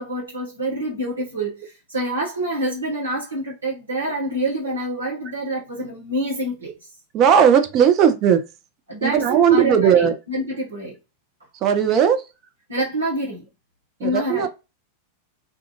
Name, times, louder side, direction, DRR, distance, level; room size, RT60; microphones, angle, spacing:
voice 1, 0.0-6.7 8.9-11.0 12.7-13.5 14.0-14.5, right 1 dB, 75° right, 1.1 m, -26 dB
voice 2, 7.1-8.4 9.0-10.2 11.6-12.3 14.0-14.5, right 8 dB, 35° right, 0.5 m, -17 dB
2.4 x 2.3 x 3.0 m
figure-of-eight pair, 90°, 0 cm